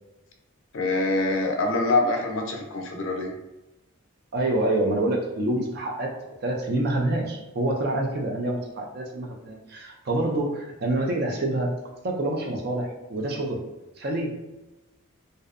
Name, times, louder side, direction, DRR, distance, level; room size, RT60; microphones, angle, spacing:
voice 1, 0.7-3.3, left 2 dB, 65° left, 2 dB, 0.4 m, -25 dB
voice 2, 4.3-6.1 6.4-11.7 12.0-13.6 14.0-14.3, right 1 dB, 45° right, 1 dB, 0.4 m, -27 dB
2.6 x 2.1 x 2.4 m, 1.0 s
head